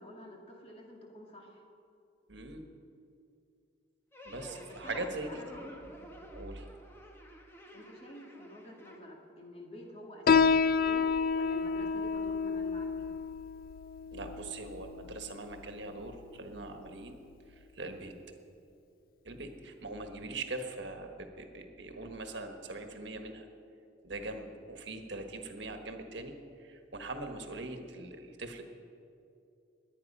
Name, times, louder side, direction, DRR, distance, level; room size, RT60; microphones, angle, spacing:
voice 1, 0.0-1.6 4.4-5.9 7.7-11.1 11.3-13.1, left 1 dB, 30° left, -1 dB, 2.2 m, -49 dB
voice 2, 2.3-2.6 4.2-5.7 6.3-6.6 14.1-17.2 17.7-18.1 19.2-23.5 24.0-26.3 26.6-28.6, right 2 dB, 75° right, 5 dB, 1.3 m, -41 dB
sound 1, 4.1-9.0, equal, 15° left, 1.3 m, -50 dB
Piano, 10.3-17.3, left 5 dB, 50° left, 0.3 m, -30 dB
21.0 x 9.3 x 5.4 m, 2.6 s
head